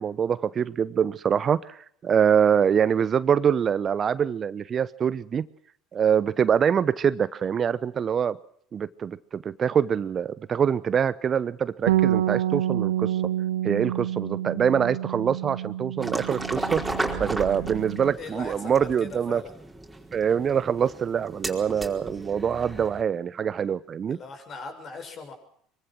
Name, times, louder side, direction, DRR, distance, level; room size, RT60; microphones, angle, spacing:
voice 1, 0.0-5.5 5.9-8.4 8.7-13.2 13.6-16.8 17.2-19.4 20.1-24.2, right 7 dB, 35° right, 16 dB, 0.9 m, -24 dB
Bass guitar, 11.9-18.1, right 12 dB, 70° right, 0.9 m, -28 dB
sound 1, 16.0-23.0, right 2 dB, 5° right, 4.6 m, -35 dB
voice 2, 18.2-19.5 24.1-25.3, left 4 dB, 40° left, 6 dB, 6.5 m, -40 dB
24.5 x 23.5 x 6.1 m, 0.64 s
figure-of-eight pair, 65°, 0 cm